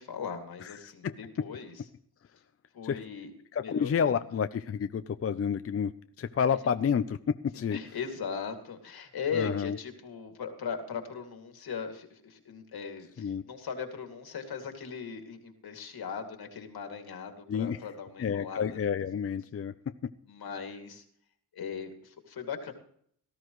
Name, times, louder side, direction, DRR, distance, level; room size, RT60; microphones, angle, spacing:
voice 1, 0.0-1.8 2.7-3.3 3.6-4.2 7.5-18.8 20.3-21.0 21.5-22.7, left 6 dB, 75° left, 5 dB, 2.5 m, -38 dB
voice 2, 3.5-5.9 6.2-7.8 9.3-9.8 13.2-13.4 17.5-17.8 18.2-19.7, left 7 dB, 40° left, 11 dB, 0.6 m, -29 dB
18.0 x 14.0 x 3.1 m, 0.64 s
cardioid pair, 105°, 37 cm